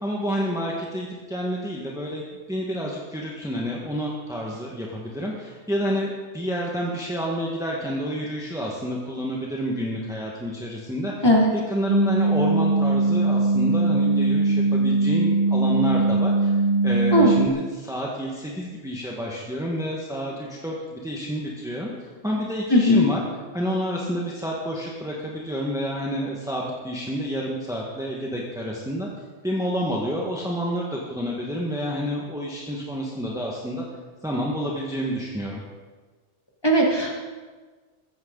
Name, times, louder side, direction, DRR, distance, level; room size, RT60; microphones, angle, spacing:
voice 1, 0.0-11.1 11.5-16.5 16.8-23.2 23.5-29.1 29.4-33.8 34.2-35.6, equal, 5° right, -3 dB, 1.6 m, -29 dB
sound 1, 11.9-17.5, right 2 dB, 45° right, 1.0 m, -21 dB
voice 2, 22.7-23.1 36.6-37.2, equal, 20° left, -2 dB, 2.6 m, -17 dB
15.0 x 15.0 x 4.0 m, 1.4 s
omnidirectional pair, 1.2 m